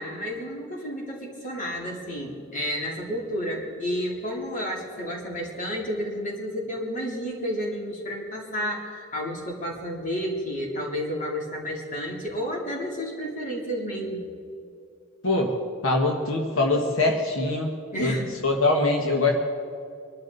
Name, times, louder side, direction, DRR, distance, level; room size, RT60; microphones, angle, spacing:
voice 1, 0.0-14.3 17.9-18.3, equal, 40° left, -2 dB, 3.2 m, -31 dB
voice 2, 15.2-15.5 15.8-17.7 18.0-18.1 18.4-19.3, left 2 dB, 80° left, 2 dB, 1.4 m, -23 dB
25.0 x 12.0 x 4.0 m, 2.5 s
head